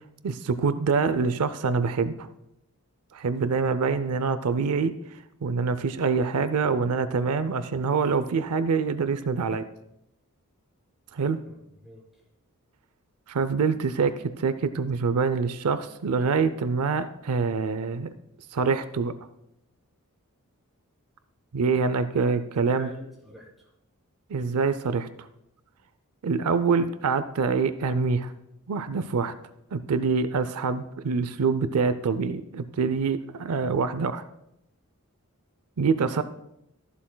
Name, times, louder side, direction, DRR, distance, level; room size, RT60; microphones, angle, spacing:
voice 1, 0.2-2.3 3.1-4.9 5.4-9.6 11.1-11.4 13.3-18.1 18.5-19.1 21.5-22.9 24.3-25.1 26.2-28.3 28.7-29.3 29.7-34.2 35.8-36.2, right 5 dB, 80° right, 12 dB, 0.5 m, -25 dB
voice 2, 3.3-3.7 11.5-12.2 22.7-23.7, equal, ahead, -4 dB, 3.3 m, -46 dB
14.0 x 11.0 x 2.2 m, 0.84 s
head